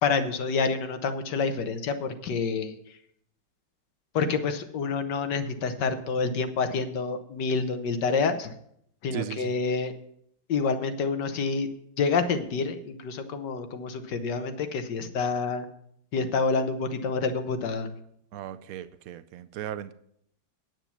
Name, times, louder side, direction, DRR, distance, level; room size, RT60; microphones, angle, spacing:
voice 1, 0.0-2.8 4.1-8.5 9.0-9.9 10.5-11.7 12.0-15.7 16.1-17.9, left 4 dB, 65° left, 9 dB, 1.6 m, -28 dB
voice 2, 9.1-9.5 18.3-19.9, right 11 dB, 90° right, 12 dB, 0.7 m, -36 dB
9.3 x 9.1 x 5.8 m, 0.70 s
omnidirectional pair, 2.1 m